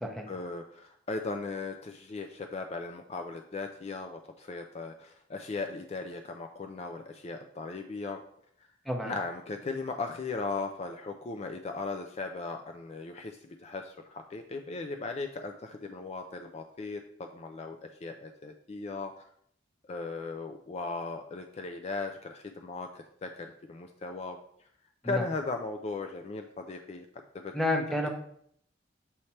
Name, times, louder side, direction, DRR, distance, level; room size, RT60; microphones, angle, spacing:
voice 1, 0.3-8.2 9.0-19.2 19.8-24.7 25.0-27.5, left 3 dB, 35° left, 5 dB, 0.3 m, -37 dB
voice 2, 27.5-28.1, left 1 dB, ahead, 2 dB, 0.7 m, -30 dB
7.0 x 3.2 x 4.2 m, 0.66 s
head